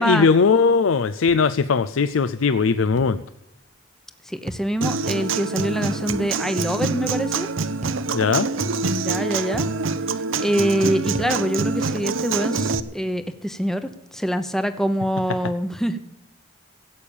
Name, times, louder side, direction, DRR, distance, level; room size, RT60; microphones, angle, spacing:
voice 1, 0.0-3.2 8.1-8.5, left 5 dB, 85° left, 13 dB, 0.5 m, -19 dB
sound 1, 1.3-1.5 3.0-3.2 4.5-4.7 6.1-6.3 7.8-8.1 9.5-9.8 11.1-11.4 12.7-13.0, right 1 dB, 35° right, 0.7 m, -36 dB
voice 2, 4.3-7.5 9.0-9.7 10.4-16.0, equal, ahead, 9 dB, 0.8 m, -25 dB
Human voice / Acoustic guitar, 4.8-12.8, right 4 dB, 80° right, 0.7 m, -25 dB
16.5 x 8.7 x 7.1 m, 0.92 s
head